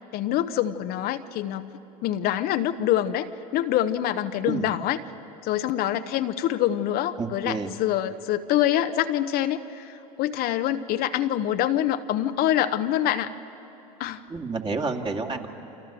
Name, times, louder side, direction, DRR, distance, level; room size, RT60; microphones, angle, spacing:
voice 1, 0.1-1.7 2.0-5.0 5.4-13.3 14.0-14.2, left 12 dB, 50° left, 9 dB, 0.9 m, -25 dB
voice 2, 7.2-7.7 14.3-15.5, right 4 dB, 25° right, 4 dB, 2.2 m, -29 dB
28.5 x 26.0 x 6.9 m, 3.0 s
hypercardioid pair, 85°, 19 cm